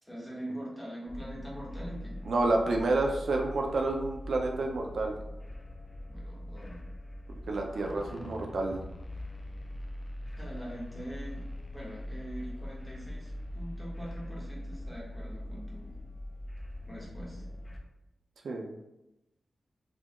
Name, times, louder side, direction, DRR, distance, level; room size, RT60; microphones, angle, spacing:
voice 1, 0.0-2.2 6.1-6.8 10.4-16.0 16.8-17.4, right 1 dB, 5° left, -5 dB, 1.0 m, -43 dB
sound 1, 1.1-17.8, left 1 dB, 30° left, 0.4 m, -42 dB
voice 2, 2.3-5.1 7.5-8.8 18.4-18.7, right 2 dB, 75° right, 1 dB, 0.4 m, -29 dB
4.1 x 2.2 x 2.9 m, 0.91 s
wide cardioid pair, 160°, 0 cm